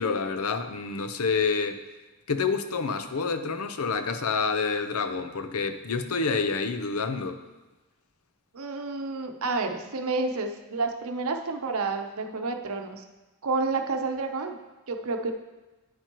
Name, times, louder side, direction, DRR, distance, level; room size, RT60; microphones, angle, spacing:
voice 1, 0.0-1.8 2.3-7.4, left 4 dB, 80° left, 9 dB, 0.6 m, -28 dB
voice 2, 8.5-13.0 13.4-14.6 14.9-15.3, right 3 dB, 75° right, 5 dB, 0.8 m, -30 dB
9.5 x 8.9 x 3.0 m, 1.1 s
head